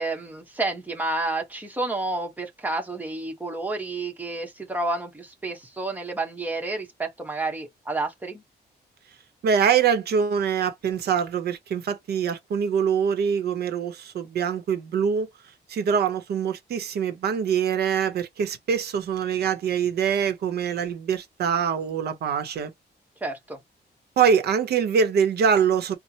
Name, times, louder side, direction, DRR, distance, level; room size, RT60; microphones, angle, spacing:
voice 1, 0.0-8.4 23.2-23.6, right 2 dB, 10° right, 0.9 m, -30 dB
voice 2, 9.4-15.3 15.7-22.7 24.2-26.0, right 7 dB, 65° right, 0.8 m, -24 dB
4.2 x 2.1 x 2.7 m
wide cardioid pair, 170°, 18 cm